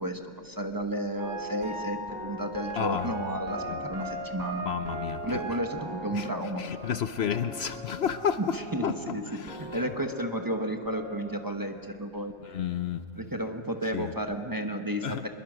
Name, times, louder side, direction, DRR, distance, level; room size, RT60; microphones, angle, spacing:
voice 1, 0.0-4.6 5.2-6.6 8.7-9.3 9.6-12.3 13.2-15.3, right 1 dB, 20° right, 5 dB, 1.0 m, -32 dB
sound 1, 1.2-9.2 9.5-11.2, right 1 dB, 45° right, 5.5 m, -39 dB
voice 2, 2.8-3.1 3.6-3.8 4.6-5.4 6.1-6.3 6.6-8.6 8.8-9.9 12.4-13.0 13.9-14.1 15.0-15.3, left 8 dB, 65° left, 11 dB, 0.9 m, -31 dB
23.5 x 22.0 x 6.2 m, 2.6 s
omnidirectional pair, 1.3 m